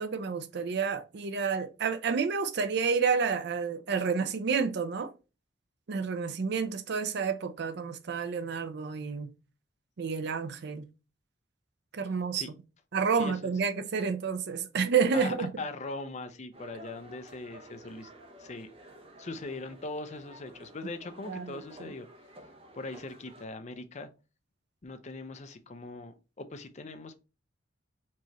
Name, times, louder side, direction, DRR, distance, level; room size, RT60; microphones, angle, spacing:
voice 1, 0.0-5.1 5.9-9.3 10.0-10.9 11.9-12.4 12.9-15.5 21.3-21.9, right 5 dB, 60° right, 0.5 m, -30 dB
voice 2, 13.1-13.5 15.1-18.1 18.4-18.7 19.2-22.1 22.7-24.1 24.8-27.2, left 3 dB, 35° left, 0.5 m, -40 dB
sound 1, 16.5-23.5, right 1 dB, 30° right, 0.7 m, -52 dB
4.5 x 3.0 x 2.9 m
head